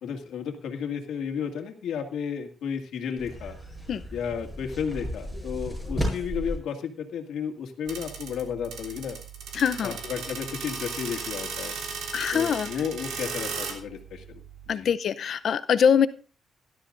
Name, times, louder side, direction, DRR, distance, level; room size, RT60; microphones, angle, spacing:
voice 1, 0.0-3.6 4.1-9.2 9.8-11.7 12.3-14.4 14.7-14.9, left 7 dB, 80° left, 4 dB, 2.0 m, -33 dB
sound 1, 3.2-6.6, equal, 5° right, 6.8 m, -33 dB
sound 2, 7.9-14.7, right 5 dB, 85° right, 3.3 m, -36 dB
voice 2, 9.5-9.9 12.1-12.7 14.7-16.1, left 7 dB, 55° left, 14 dB, 0.6 m, -23 dB
18.0 x 12.5 x 2.6 m, 0.36 s
cardioid pair, 135°, 0 cm